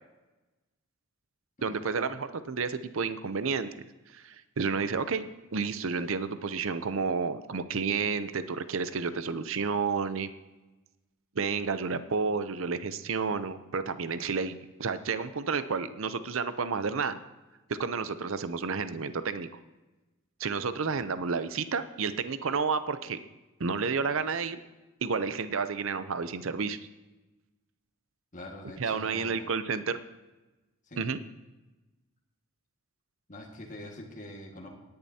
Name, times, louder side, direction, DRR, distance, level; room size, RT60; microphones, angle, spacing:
voice 1, 1.6-3.7 4.1-5.2 5.5-10.3 11.4-14.5 14.8-17.2 17.8-19.5 20.4-23.2 23.6-24.6 25.0-26.8 28.8-30.0 31.0-31.2, right 5 dB, 65° right, 12 dB, 0.6 m, -31 dB
voice 2, 28.3-29.5 30.8-31.0 33.3-34.7, left 1 dB, 35° left, -1 dB, 1.8 m, -44 dB
18.0 x 10.5 x 2.8 m, 1.1 s
head